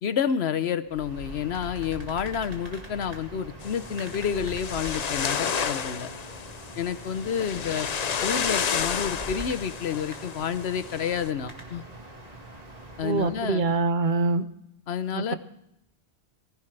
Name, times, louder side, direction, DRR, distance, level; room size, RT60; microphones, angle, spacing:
voice 1, 0.0-6.1 6.8-7.9 8.2-11.8 13.0-13.6 14.9-15.4, left 8 dB, 80° left, 13 dB, 1.0 m, -29 dB
sound 1, 0.9-13.8, right 1 dB, 40° right, 2.0 m, -42 dB
sound 2, 3.6-11.3, left 7 dB, 45° left, 0.6 m, -31 dB
voice 2, 13.0-14.4 15.1-15.3, right 3 dB, 55° right, 12 dB, 0.8 m, -24 dB
19.0 x 16.0 x 3.3 m, 0.78 s
omnidirectional pair, 1.1 m